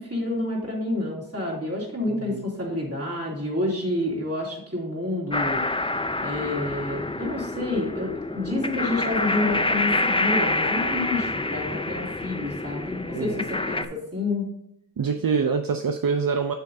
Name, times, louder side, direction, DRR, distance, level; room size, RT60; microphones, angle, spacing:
voice 1, 0.0-5.6 6.2-14.5, left 2 dB, 40° right, -3 dB, 2.7 m, -29 dB
voice 2, 2.1-2.4 13.1-13.3 15.0-16.5, right 5 dB, 70° right, 7 dB, 0.5 m, -25 dB
sound 1, 5.3-13.8, left 2 dB, 15° left, 0.4 m, -27 dB
7.9 x 6.8 x 2.7 m, 0.78 s
wide cardioid pair, 40°, 36 cm